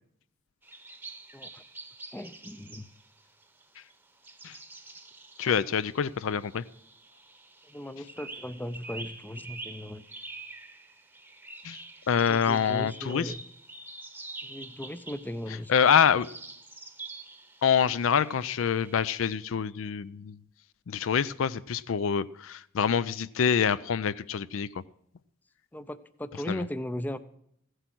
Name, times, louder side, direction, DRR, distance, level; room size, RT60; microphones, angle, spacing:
sound 1, 0.6-19.4, right 3 dB, 10° right, 0.9 m, -47 dB
voice 1, 1.3-1.6 2.1-2.9 7.7-10.0 12.3-13.4 14.4-15.8 25.7-27.2, left 1 dB, 10° left, 13 dB, 0.4 m, -37 dB
voice 2, 5.4-6.6 11.6-11.8 12.1-13.3 15.7-16.3 17.6-20.4 20.9-24.7 26.5-26.6, left 7 dB, 75° left, 17 dB, 0.4 m, -26 dB
15.0 x 8.0 x 6.0 m, 0.71 s
head